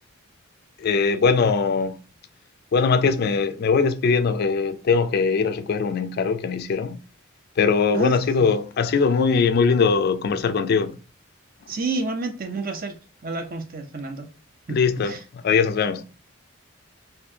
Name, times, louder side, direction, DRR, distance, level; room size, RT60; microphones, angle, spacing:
voice 1, 0.8-2.0 2.7-7.0 7.6-11.0 14.7-16.0, left 5 dB, 50° left, 0.3 m, -21 dB
voice 2, 7.9-8.5 11.7-13.0 13.2-14.3 14.7-15.2, right 3 dB, 45° right, 0.6 m, -30 dB
4.1 x 2.7 x 2.7 m
head